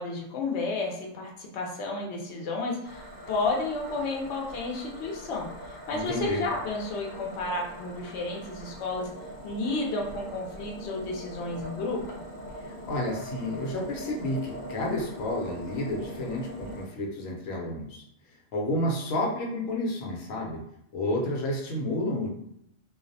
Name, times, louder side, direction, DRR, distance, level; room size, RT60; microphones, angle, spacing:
voice 1, 0.0-5.5 5.9-9.1 9.4-12.0, left 3 dB, 65° left, -1 dB, 0.9 m, -32 dB
sound 1, 2.8-16.9, equal, 15° left, 0.6 m, -42 dB
voice 2, 5.9-6.4 12.6-18.0 18.5-20.6 20.9-22.3, left 1 dB, 90° left, -1 dB, 1.0 m, -30 dB
2.4 x 2.0 x 2.6 m, 0.76 s
omnidirectional pair, 1.3 m